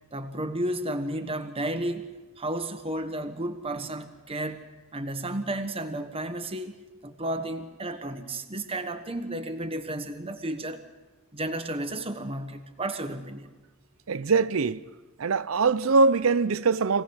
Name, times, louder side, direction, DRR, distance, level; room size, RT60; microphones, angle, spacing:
voice 1, 0.1-2.1 2.4-4.6 4.9-10.8 11.3-13.5, right 1 dB, 30° right, 1.4 m, -32 dB
voice 2, 14.1-14.8 15.2-17.0, right 4 dB, 75° right, 0.6 m, -22 dB
25.0 x 17.5 x 6.4 m
head